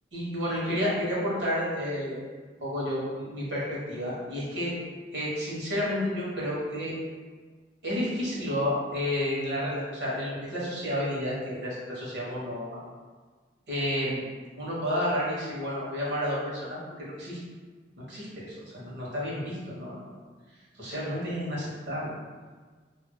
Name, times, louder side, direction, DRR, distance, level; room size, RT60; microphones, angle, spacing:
voice 1, 0.1-2.2 2.6-4.7 5.1-6.9 7.8-12.7 13.7-14.2 14.6-17.4 18.1-20.0 20.7-22.1, equal, 85° right, -6 dB, 1.3 m, -31 dB
4.7 x 2.8 x 2.3 m, 1.4 s
head